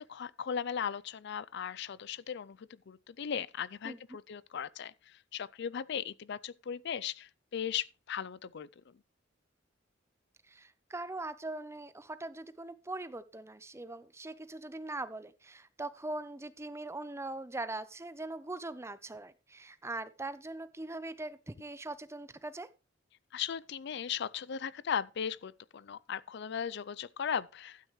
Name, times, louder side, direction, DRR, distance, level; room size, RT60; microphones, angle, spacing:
voice 1, 0.0-4.9 5.3-8.7 23.3-27.8, left 8 dB, 60° left, 0.5 m, -37 dB
voice 2, 10.5-22.7, right 2 dB, 15° right, 0.7 m, -41 dB
12.0 x 9.1 x 3.1 m
head